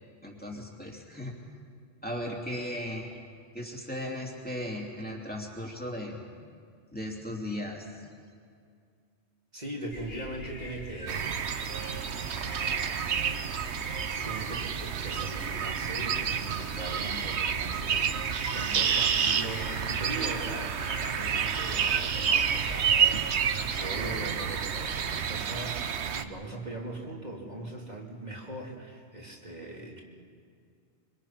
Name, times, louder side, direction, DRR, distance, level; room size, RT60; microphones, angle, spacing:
voice 1, 0.2-1.3 2.0-3.1 3.5-6.2 6.9-8.1, left 1 dB, 10° left, -1 dB, 3.1 m, -36 dB
voice 2, 9.5-11.3 12.4-13.5 14.2-30.0, right 1 dB, 40° right, -2 dB, 3.2 m, -40 dB
sound 1, 9.9-25.1, left 1 dB, 60° left, 4.9 m, -44 dB
sound 2, 11.1-26.2, right 7 dB, 85° right, 1.2 m, -29 dB
25.0 x 25.0 x 5.9 m, 2.2 s
omnidirectional pair, 1.1 m